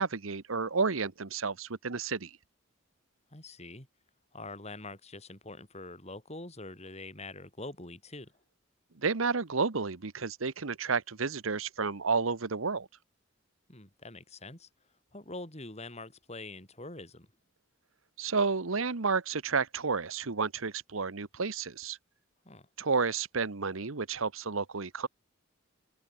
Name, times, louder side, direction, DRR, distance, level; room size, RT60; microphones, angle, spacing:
voice 1, 0.0-2.3 9.0-12.9 18.2-22.0 22.8-25.1, right 4 dB, 75° right, 1.1 m, -31 dB
voice 2, 3.3-3.9 4.3-8.3 13.7-14.7 15.1-17.3 22.4-22.7, left 2 dB, 30° left, 5.8 m, -44 dB
open air
head